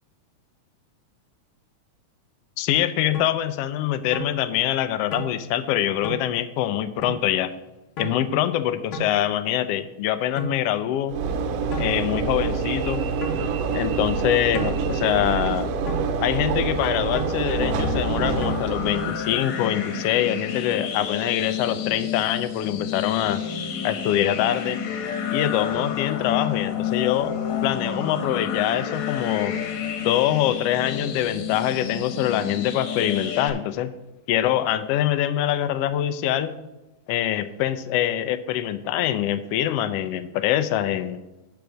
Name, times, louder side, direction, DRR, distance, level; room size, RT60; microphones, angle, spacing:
voice 1, 2.6-7.5 8.0-11.2 11.7-13.0 13.7-15.7 16.2-23.4 23.8-24.8 25.3-27.4 27.6-29.6 30.0-33.9 34.3-36.6 37.1-41.2, left 12 dB, 90° left, 11 dB, 1.4 m, -24 dB
sound 1, 3.1-3.3 4.1-4.3 5.1-5.3 6.0-6.2 7.0-7.2 8.0-8.2 8.9-9.1 10.4-10.6 11.7-11.9 13.2-13.4 14.5-14.8 15.9-16.1 17.1-17.4 18.4-18.5, right 1 dB, 55° left, 1.7 m, -32 dB
Train / Engine / Alarm, 11.1-19.3, right 5 dB, 70° right, 1.6 m, -26 dB
sound 2, 17.5-33.5, left 7 dB, 75° left, 2.3 m, -30 dB
11.5 x 4.7 x 6.3 m, 1.0 s
omnidirectional pair, 3.4 m